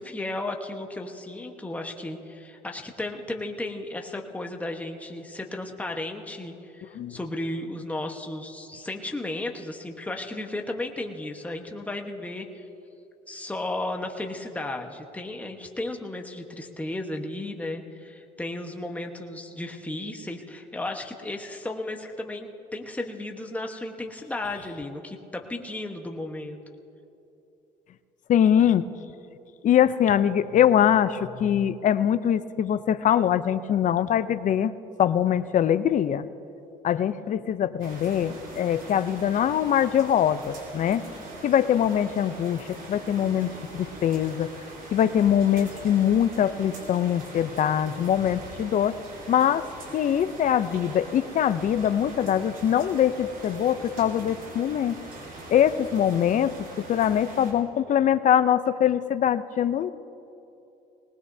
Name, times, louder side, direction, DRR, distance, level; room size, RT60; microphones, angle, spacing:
voice 1, 0.0-12.7 13.3-26.6, left 2 dB, 10° left, 2 dB, 1.2 m, -34 dB
voice 2, 28.3-28.9 29.6-34.7 35.0-36.3 36.8-41.0 41.4-44.5 44.9-48.9 49.3-49.7 49.9-55.0 55.5-56.5 56.9-59.9, left 9 dB, 50° left, 14 dB, 0.6 m, -23 dB
sound 1, 37.8-57.5, right 2 dB, 60° right, 4.3 m, -42 dB
21.0 x 19.0 x 2.7 m, 2.8 s
cardioid pair, 110°, 17 cm